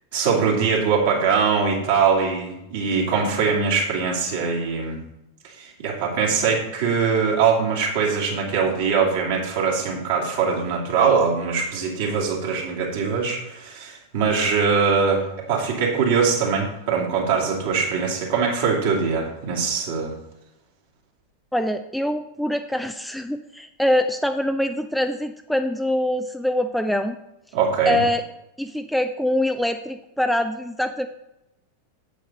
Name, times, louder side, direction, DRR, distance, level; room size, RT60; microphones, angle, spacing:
voice 1, 0.1-5.0 5.5-20.1 27.5-28.0, right 5 dB, 50° right, -2 dB, 2.8 m, -22 dB
voice 2, 21.5-27.2 27.9-28.2 28.6-31.1, left 1 dB, ahead, 7 dB, 0.4 m, -24 dB
8.4 x 8.2 x 4.2 m, 0.90 s
figure-of-eight pair, 90°, 0 cm